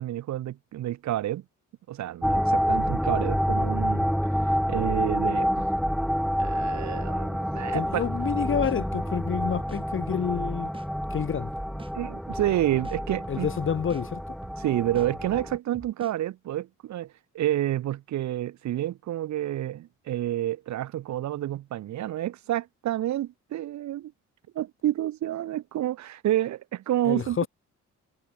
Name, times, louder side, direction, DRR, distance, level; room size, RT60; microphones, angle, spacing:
voice 1, 0.0-1.4 1.9-4.1 4.4-5.6 6.4-8.0 11.9-13.5 14.6-24.1 24.5-27.4, right 13 dB, 65° right, 0.8 m, -29 dB
sound 1, 2.2-15.6, equal, ahead, 1.8 m, -28 dB
voice 2, 7.7-10.7 11.1-11.5 13.3-14.4 27.0-27.5, left 7 dB, 40° left, 3.0 m, -28 dB
sound 2, 8.1-8.3 8.6-9.8 10.2-10.4 10.7-11.9 12.3-12.5 12.8-14.1 14.4-14.6 14.9-16.2, right 3 dB, 15° right, 4.8 m, -46 dB
cardioid pair, 160°, 30 cm